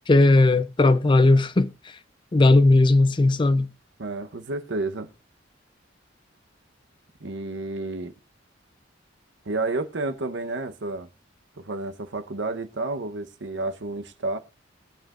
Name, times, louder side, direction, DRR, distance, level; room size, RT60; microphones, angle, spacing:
voice 1, 0.1-1.7 2.3-3.7, left 2 dB, 25° left, 0.5 m, -17 dB
voice 2, 4.0-5.1 7.2-8.1 9.5-11.1 11.6-14.4, right 2 dB, 65° right, 0.9 m, -30 dB
21.5 x 7.5 x 2.5 m
head